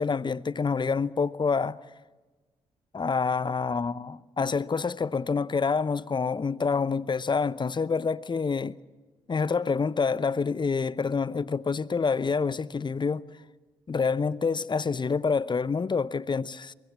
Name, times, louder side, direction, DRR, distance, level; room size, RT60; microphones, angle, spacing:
voice 1, 0.0-1.8 2.9-8.8 9.3-13.2 13.9-16.7, left 5 dB, 30° left, 0.8 m, -27 dB
23.5 x 22.5 x 7.3 m
hypercardioid pair, 45°, 14 cm